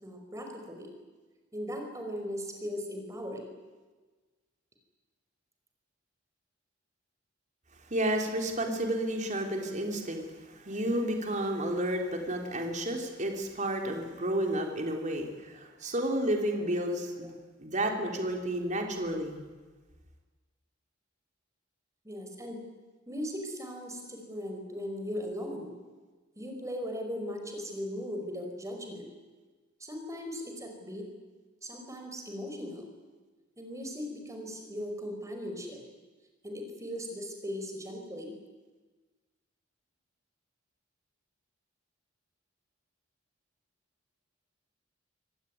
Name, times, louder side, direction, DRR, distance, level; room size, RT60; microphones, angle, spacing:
voice 1, 0.0-0.9 1.5-3.5 17.2-17.3 22.0-22.6 23.1-25.7 26.4-29.1 29.8-31.1 31.6-32.9 33.6-35.8 36.4-38.4, equal, 15° right, 4 dB, 5.3 m, -38 dB
voice 2, 7.9-17.3 17.6-19.4, right 1 dB, 40° right, 3 dB, 3.8 m, -31 dB
26.5 x 18.0 x 9.6 m, 1.3 s
head